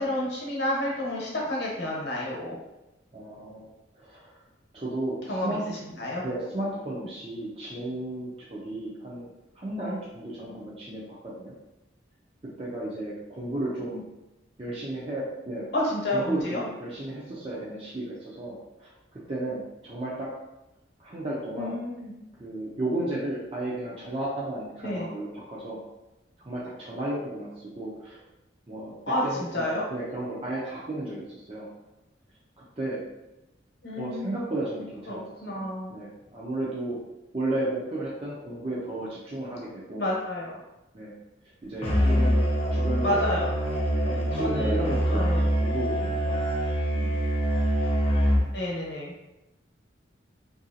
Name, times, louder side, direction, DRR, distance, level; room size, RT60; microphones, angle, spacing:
voice 1, 0.0-2.6 5.3-5.6 6.0-6.2 15.7-16.6 21.6-22.1 24.8-25.1 29.1-29.2 29.5-29.8 33.8-34.3 35.1-35.9 40.0-40.6 43.0-43.5 44.4-44.8 45.1-45.5 48.5-49.1, left 1 dB, 60° left, -4 dB, 0.9 m, -29 dB
voice 2, 3.1-3.7 3.9-4.3 4.7-5.6 6.2-9.3 9.5-11.5 12.6-14.0 14.6-15.7 16.1-18.9 19.3-20.3 21.0-21.7 22.4-25.8 26.5-28.2 28.7-28.9 29.2-31.7 32.6-33.0 34.0-35.2 35.5-35.6 35.9-37.0 37.3-40.0 40.9-41.1 41.6-42.4 42.7-43.3 44.0-45.3 45.6-46.5 46.9-47.2, right 1 dB, 30° right, -7 dB, 0.6 m, -33 dB
Musical instrument, 41.8-48.6, equal, 35° left, 0.7 m, -24 dB
2.9 x 2.6 x 2.7 m, 0.97 s
head